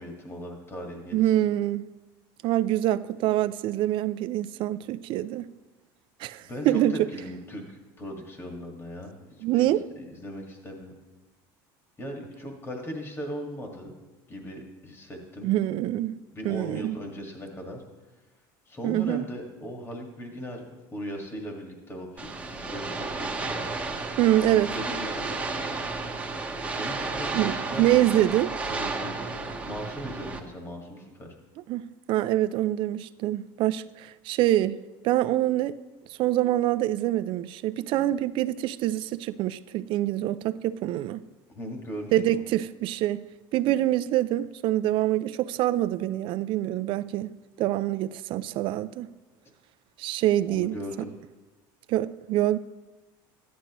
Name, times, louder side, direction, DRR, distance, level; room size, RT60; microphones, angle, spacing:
voice 1, 0.0-1.2 6.4-9.1 9.7-10.9 12.0-13.9 14.3-15.5 16.3-17.8 18.7-20.6 20.9-23.6 24.5-25.4 26.7-28.2 28.7-31.3 41.5-42.5 50.5-51.1, equal, 20° left, 1.8 m, -38 dB
voice 2, 1.1-1.8 2.4-5.5 6.2-7.1 9.4-9.9 15.4-17.0 18.8-19.3 24.2-24.7 27.3-28.5 31.7-34.8 35.0-35.7 36.2-41.2 42.1-43.2 43.5-49.1 50.0-50.8 51.9-52.6, right 14 dB, 55° right, 0.4 m, -25 dB
sound 1, 22.2-30.4, right 3 dB, 10° right, 1.0 m, -32 dB
13.5 x 10.5 x 3.0 m
supercardioid pair, 130°, 11 cm